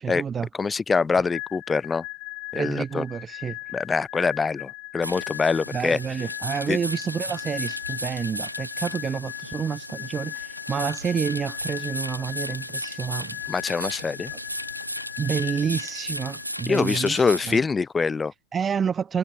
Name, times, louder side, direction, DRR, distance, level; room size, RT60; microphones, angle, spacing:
voice 1, 0.0-0.5 2.5-3.6 5.7-13.4 14.3-14.4 15.2-17.6 18.5-19.2, right 7 dB, 20° right, 1.3 m, -29 dB
voice 2, 0.6-2.0 2.5-3.0 3.7-6.0 6.7-6.8 13.5-14.3 16.7-18.3, left 5 dB, 15° left, 1.3 m, -24 dB
sound 1, 1.3-16.9, left 25 dB, 40° left, 5.5 m, -38 dB
sound 2, 5.0-17.6, equal, 90° right, 4.6 m, -35 dB
figure-of-eight pair, 90°, 0 cm